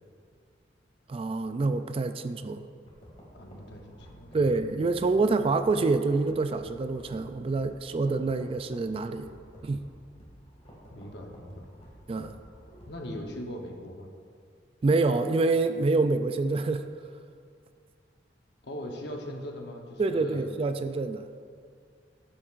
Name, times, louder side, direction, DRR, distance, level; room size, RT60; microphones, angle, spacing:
voice 1, 1.1-2.7 4.3-9.3 9.6-9.9 12.1-12.4 14.8-16.9 20.0-21.3, right 3 dB, 30° right, 9 dB, 0.3 m, -26 dB
sound 1, 2.9-13.3, equal, 35° left, 2.2 m, -52 dB
voice 2, 3.3-4.5 10.9-11.7 12.9-14.1 18.6-20.5, equal, 65° left, 2 dB, 1.0 m, -40 dB
12.5 x 8.8 x 2.5 m, 2.2 s
head